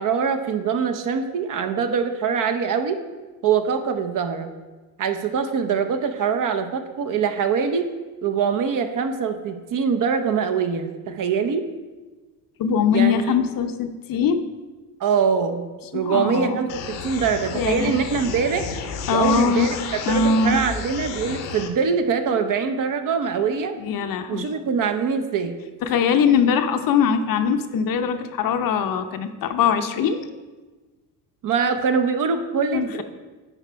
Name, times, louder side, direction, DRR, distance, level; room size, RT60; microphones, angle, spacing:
voice 1, 0.0-3.0 3.4-4.5 5.0-7.9 8.2-11.7 12.9-13.3 15.0-15.7 15.9-18.7 19.1-19.8 20.1-23.8 24.3-25.6 31.4-33.0, right 6 dB, 45° right, 7 dB, 0.8 m, -23 dB
voice 2, 12.6-14.4 15.9-16.6 17.5-17.9 19.1-19.7 20.1-20.6 23.8-24.5 25.8-30.3 32.7-33.0, left 6 dB, 50° left, 8 dB, 0.7 m, -21 dB
sound 1, 16.7-21.7, left 6 dB, 80° left, 1.0 m, -32 dB
9.9 x 4.1 x 4.5 m, 1.3 s
supercardioid pair, 100°, 44 cm